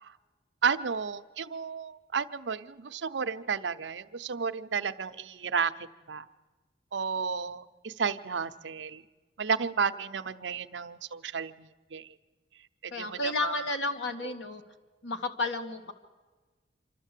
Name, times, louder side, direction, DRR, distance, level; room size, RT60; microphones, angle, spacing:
voice 1, 0.6-6.3 6.9-9.0 9.4-12.1 12.8-13.7, right 6 dB, 80° right, 11 dB, 0.7 m, -32 dB
voice 2, 12.9-14.6 15.0-15.9, left 2 dB, 90° left, 6 dB, 1.6 m, -32 dB
26.5 x 12.5 x 8.2 m, 1.3 s
head